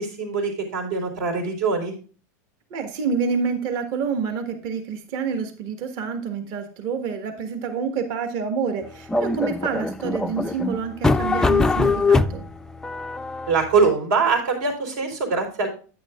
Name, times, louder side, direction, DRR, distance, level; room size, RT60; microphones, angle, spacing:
voice 1, 0.0-1.9 13.5-15.7, right 4 dB, 75° right, 4 dB, 4.1 m, -23 dB
voice 2, 2.7-12.4, right 5 dB, 50° right, 6 dB, 1.7 m, -28 dB
sound 1, 9.1-13.9, left 3 dB, 5° left, 0.3 m, -22 dB
10.5 x 9.6 x 2.5 m, 0.39 s
supercardioid pair, 145°, 9 cm